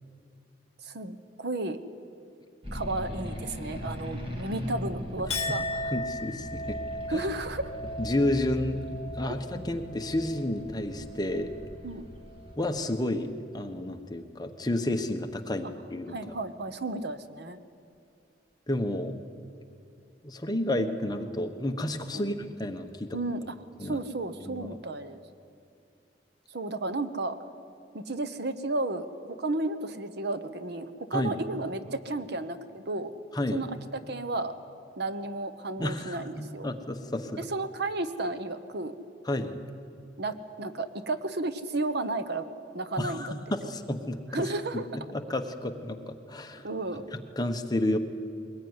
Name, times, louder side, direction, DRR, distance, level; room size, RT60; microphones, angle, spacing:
voice 1, 0.8-1.8 2.7-5.9 7.1-7.7 9.3-9.7 11.8-12.0 16.1-17.6 22.1-22.3 23.1-23.6 23.8-25.2 26.5-27.4 27.9-33.1 33.5-33.7 34.1-34.5 35.0-36.7 37.4-38.9 40.2-42.5 42.7-43.3 44.3-44.9 46.6-47.1, right 2 dB, 65° right, 11 dB, 1.1 m, -33 dB
sound 1, 2.6-12.6, left 1 dB, 30° right, 3.2 m, -40 dB
Chink clink, 5.3-11.9 12.2-12.8, left 1 dB, 40° left, 2.2 m, -38 dB
voice 2, 5.9-6.8 7.1-7.2 8.0-8.8 9.2-11.5 12.6-13.3 13.5-16.1 18.7-19.2 20.2-23.2 23.8-24.0 24.4-24.7 31.1-31.4 33.3-33.6 35.8-36.2 36.6-37.4 39.3-39.6 43.0-44.2 44.7-46.6 47.1-48.0, left 1 dB, 25° left, 5 dB, 1.2 m, -31 dB
22.0 x 19.5 x 9.7 m, 2.5 s
head